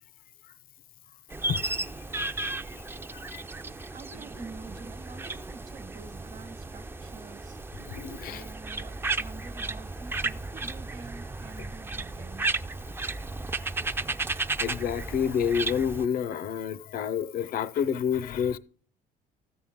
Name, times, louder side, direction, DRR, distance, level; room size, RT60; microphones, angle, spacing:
sound 1, 1.3-16.1, right 3 dB, 15° right, 0.4 m, -34 dB
voice 1, 1.4-1.8 3.1-3.4 7.8-8.4 14.6-18.6, left 8 dB, 60° left, 0.6 m, -29 dB
voice 2, 3.9-7.6 8.3-12.8, right 4 dB, 45° right, 1.1 m, -47 dB
14.0 x 8.6 x 3.6 m
cardioid pair, 110°, 17 cm